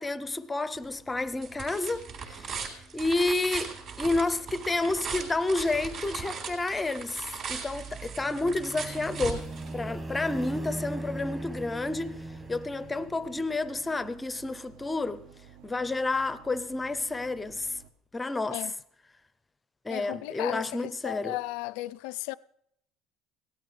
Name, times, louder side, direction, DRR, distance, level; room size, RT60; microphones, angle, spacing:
voice 1, 0.0-9.5 9.7-12.1 12.5-15.2 15.6-17.8 18.1-18.6 19.8-21.4, left 2 dB, 10° left, 0.5 m, -30 dB
sound 1, 0.7-10.2, right 5 dB, 45° right, 3.7 m, -39 dB
sound 2, 7.8-13.5, right 2 dB, 15° right, 1.0 m, -39 dB
sound 3, 8.3-17.9, right 8 dB, 85° right, 1.0 m, -54 dB
voice 2, 19.9-22.3, left 18 dB, 75° left, 0.4 m, -35 dB
18.0 x 12.5 x 3.2 m
cardioid pair, 160°, 0 cm